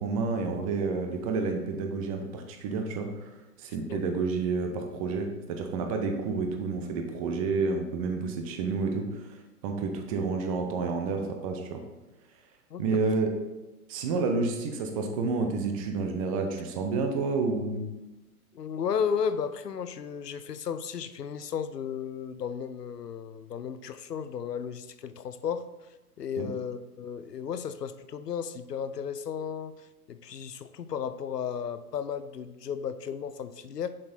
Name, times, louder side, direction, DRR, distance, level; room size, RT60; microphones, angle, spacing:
voice 1, 0.0-3.3 3.6-9.3 9.6-11.8 12.8-13.3 13.9-17.8 26.4-26.5, right 4 dB, 25° right, 4 dB, 0.6 m, -29 dB
voice 2, 12.7-13.1 18.5-25.7 26.2-29.8 30.1-33.9, left 7 dB, 80° left, 13 dB, 0.6 m, -34 dB
7.2 x 4.7 x 4.0 m, 1.1 s
figure-of-eight pair, 110°, 47 cm